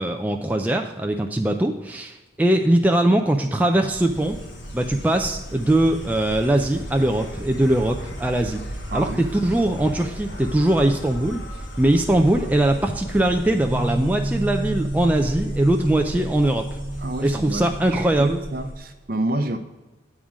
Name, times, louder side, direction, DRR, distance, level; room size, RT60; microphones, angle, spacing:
voice 1, 0.0-4.4 4.7-8.6 8.9-11.4 11.8-16.8 17.2-18.4, right 1 dB, 10° right, 3 dB, 0.3 m, -21 dB
Insect, 3.8-18.9, equal, 75° left, 1.4 m, -36 dB
voice 2, 8.9-9.2 17.0-19.6, right 2 dB, 50° right, 8 dB, 0.6 m, -28 dB
sound 1, 13.6-18.8, right 1 dB, 5° left, 1.0 m, -30 dB
8.5 x 3.7 x 6.1 m, 1.2 s
head